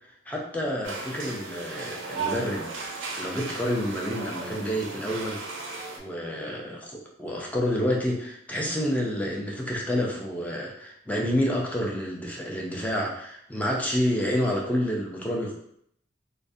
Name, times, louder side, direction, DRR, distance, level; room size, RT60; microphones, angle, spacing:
voice 1, 0.3-2.7 3.2-5.7 6.0-15.5, equal, 10° left, -2 dB, 0.4 m, -29 dB
sound 1, 0.8-6.0, right 4 dB, 80° right, 0.4 m, -36 dB
2.4 x 2.0 x 2.6 m, 0.70 s
head